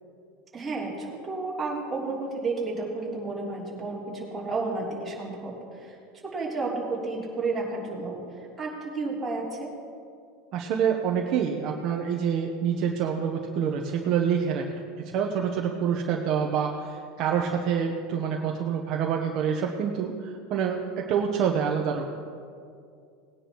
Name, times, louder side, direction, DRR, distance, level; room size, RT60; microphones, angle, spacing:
voice 1, 0.5-6.0 6.2-9.7, right 3 dB, 10° right, -8 dB, 3.5 m, -32 dB
voice 2, 10.5-14.6 15.0-22.1, right 7 dB, 40° right, 1 dB, 0.9 m, -27 dB
20.0 x 10.0 x 3.1 m, 2.4 s
supercardioid pair, 155°, 0 cm